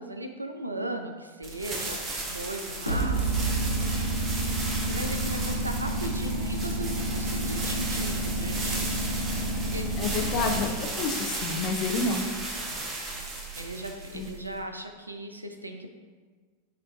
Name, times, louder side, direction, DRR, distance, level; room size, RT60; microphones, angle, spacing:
voice 1, 0.0-3.7 4.2-4.4 4.8-9.4 9.7-9.9 12.6-12.9 13.6-15.9, right 1 dB, 80° right, 5 dB, 0.4 m, -38 dB
sound 1, 1.4-14.6, right 2 dB, 25° right, 0.7 m, -35 dB
sound 2, 2.9-10.6, right 1 dB, 85° left, 0.6 m, -29 dB
voice 2, 10.0-10.7 11.0-12.3 14.1-14.3, left 4 dB, 40° left, 4 dB, 0.4 m, -29 dB
7.4 x 2.5 x 2.2 m, 1.5 s
figure-of-eight pair, 90°, 0 cm